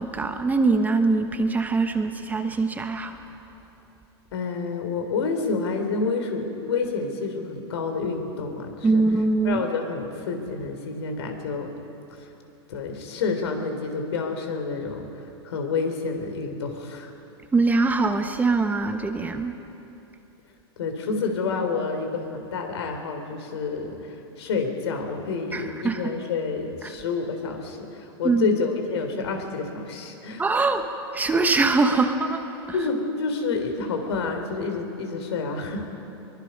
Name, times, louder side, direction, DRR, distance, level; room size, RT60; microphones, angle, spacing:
voice 1, 0.0-3.2 8.8-9.7 17.5-19.6 25.5-26.0 26.8-26.9 28.2-28.5 30.4-30.8 31.1-32.4, right 3 dB, 10° right, 6 dB, 1.1 m, -22 dB
voice 2, 4.3-9.0 9.4-11.7 12.7-15.1 15.4-17.1 20.8-30.6 32.7-35.9, left 4 dB, 75° left, 5 dB, 3.5 m, -29 dB
23.0 x 22.0 x 5.4 m, 3.0 s
hypercardioid pair, 125°, 14 cm